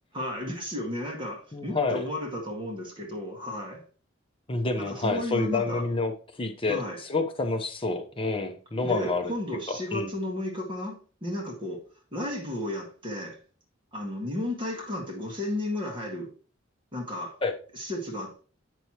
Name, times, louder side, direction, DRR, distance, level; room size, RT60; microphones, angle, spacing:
voice 1, 0.1-3.8 4.8-5.8 6.7-7.0 8.8-11.8 12.1-13.4 13.9-16.3 16.9-17.4 17.7-18.4, left 1 dB, 25° right, 1.7 m, -33 dB
voice 2, 1.5-2.0 4.5-6.1 6.4-9.3 9.7-10.1 17.4-17.5, left 3 dB, 25° left, 0.8 m, -28 dB
8.1 x 6.1 x 2.9 m
head